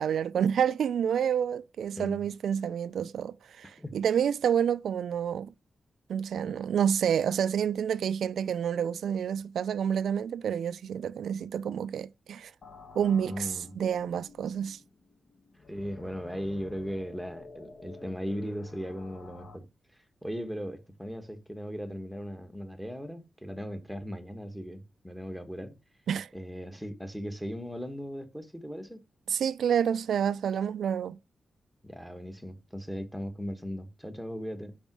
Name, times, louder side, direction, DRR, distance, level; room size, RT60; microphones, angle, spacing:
voice 1, 0.0-5.5 6.1-12.5 13.0-14.8 26.1-26.3 29.3-31.2, right 8 dB, 85° right, 0.3 m, -29 dB
sound 1, 12.6-19.6, left 3 dB, 45° left, 1.2 m, -50 dB
voice 2, 13.3-13.8 15.7-19.6 20.2-25.7 26.3-29.0 31.8-34.7, equal, ahead, 1.3 m, -38 dB
5.3 x 4.9 x 6.0 m
wide cardioid pair, 120°, 0 cm